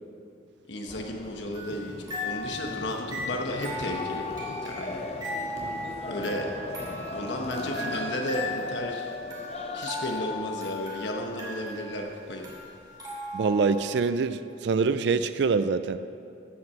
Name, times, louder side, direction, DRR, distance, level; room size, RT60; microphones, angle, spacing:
voice 1, 0.7-5.0 6.1-6.5 7.1-9.1 9.7-12.5, left 1 dB, 70° left, 2 dB, 1.1 m, -33 dB
sound 1, 0.9-10.4, left 2 dB, 35° left, 0.6 m, -38 dB
sound 2, 1.5-13.9, left 2 dB, 20° right, 2.7 m, -37 dB
voice 2, 13.3-16.0, right 4 dB, 65° right, 11 dB, 0.4 m, -25 dB
15.0 x 5.9 x 6.3 m, 2.4 s
head